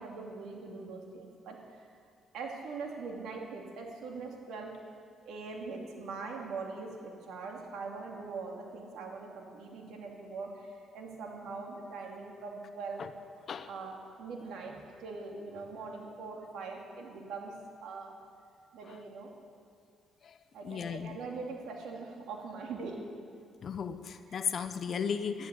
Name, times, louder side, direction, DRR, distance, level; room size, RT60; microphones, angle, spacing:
voice 1, 0.0-1.8 2.3-4.7 5.3-13.0 13.7-17.5 17.8-18.1 18.7-19.3 20.5-23.1 24.3-24.4, right 4 dB, 80° right, 0 dB, 2.5 m, -42 dB
voice 2, 20.6-21.2 23.6-25.5, left 6 dB, 55° left, 10 dB, 0.9 m, -35 dB
12.0 x 11.5 x 8.3 m, 2.4 s
cardioid pair, 90°, 0 cm